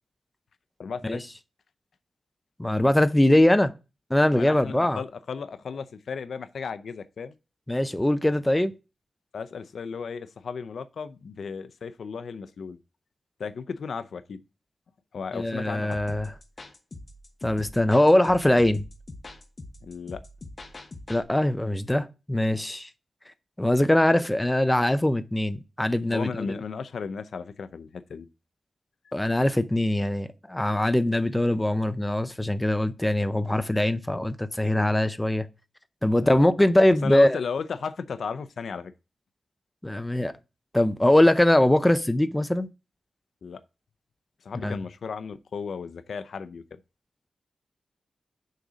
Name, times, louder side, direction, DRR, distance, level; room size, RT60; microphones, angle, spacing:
voice 1, 0.8-1.2 4.3-7.3 9.3-12.8 13.4-14.4 15.1-16.0 19.8-20.2 26.1-28.3 36.2-36.5 37.0-38.9 43.4-43.6 44.4-46.8, left 5 dB, 80° left, 0.5 m, -35 dB
voice 2, 2.6-3.7 4.1-5.0 7.7-8.7 15.3-16.3 17.4-18.8 21.1-22.9 23.6-26.5 29.1-35.5 36.0-37.4 39.8-40.3 40.7-42.7 44.6-44.7, left 1 dB, 10° left, 0.6 m, -22 dB
sound 1, 15.9-21.2, left 2 dB, 40° left, 1.1 m, -43 dB
6.6 x 3.9 x 6.1 m
wide cardioid pair, 120°, 0 cm